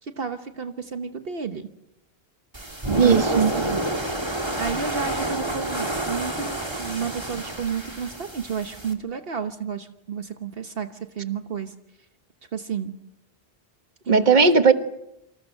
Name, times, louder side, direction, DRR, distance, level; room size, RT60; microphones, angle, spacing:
voice 1, 0.0-1.7 2.9-3.8 4.6-11.7 12.5-12.9 14.0-14.4, right 7 dB, 65° right, 7 dB, 1.3 m, -31 dB
sound 1, 2.5-8.9, right 1 dB, 25° right, 2.5 m, -29 dB
voice 2, 3.0-3.5 14.1-14.7, right 5 dB, 45° right, 9 dB, 1.5 m, -17 dB
28.0 x 26.0 x 6.5 m, 0.85 s
omnidirectional pair, 1.0 m